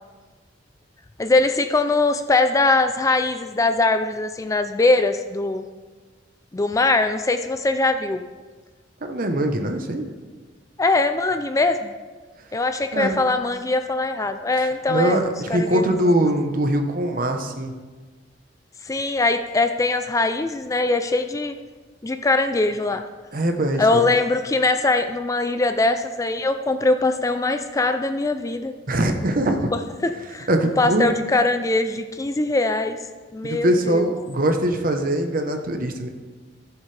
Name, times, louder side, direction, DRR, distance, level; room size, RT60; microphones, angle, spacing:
voice 1, 1.2-5.7 6.5-8.3 10.8-11.9 12.5-15.2 15.5-15.8 18.9-21.5 22.0-23.0 23.8-28.7 29.7-30.5 30.8-33.0 33.3-34.1, left 2 dB, 20° left, 8 dB, 0.4 m, -21 dB
voice 2, 9.1-10.1 12.9-13.2 14.6-17.7 23.3-24.1 28.9-29.7 30.5-31.1 33.4-36.1, right 1 dB, 50° right, 5 dB, 1.0 m, -22 dB
15.0 x 7.2 x 3.4 m, 1.4 s
head